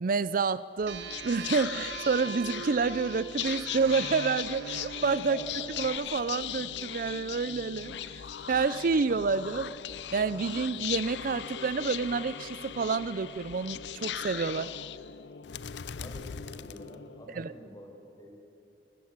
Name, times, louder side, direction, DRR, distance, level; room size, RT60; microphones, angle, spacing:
voice 1, 0.0-5.4 5.8-9.7 10.1-14.7 17.3-17.5, right 4 dB, 50° right, 17 dB, 0.5 m, -29 dB
Whispering, 0.8-17.4, left 10 dB, 70° left, 0.6 m, -39 dB
sound 1, 0.9-6.0, right 6 dB, 75° right, 1.6 m, -41 dB
voice 2, 5.3-5.7 15.9-18.3, left 1 dB, 20° left, 0 dB, 5.7 m, -47 dB
29.5 x 14.0 x 9.5 m, 2.7 s
head